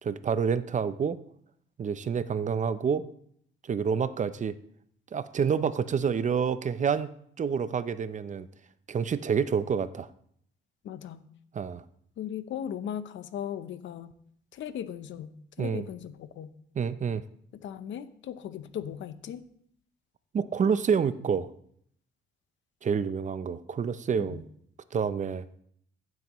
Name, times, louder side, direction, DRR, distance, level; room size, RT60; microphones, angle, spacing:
voice 1, 0.0-1.2 1.8-3.1 3.7-4.5 5.1-7.1 7.4-8.5 8.9-10.1 11.5-11.8 15.6-15.8 16.8-17.2 20.3-21.5 22.8-24.4 24.9-25.5, right 6 dB, 40° right, 14 dB, 0.6 m, -28 dB
voice 2, 10.8-11.2 12.2-14.1 14.5-16.5 17.5-19.4 24.2-24.4, left 9 dB, 70° left, 13 dB, 0.7 m, -38 dB
15.0 x 7.7 x 3.0 m, 0.66 s
cardioid pair, 90°, 20 cm